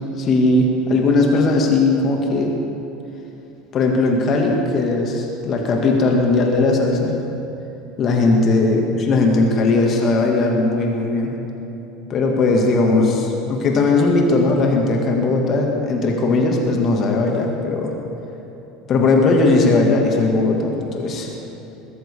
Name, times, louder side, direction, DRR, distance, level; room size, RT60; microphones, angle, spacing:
voice 1, 0.2-2.5 3.7-7.1 8.0-11.3 12.1-17.9 18.9-21.3, left 3 dB, 40° left, 1 dB, 2.2 m, -18 dB
21.5 x 13.5 x 3.7 m, 3.0 s
figure-of-eight pair, 70°, 0 cm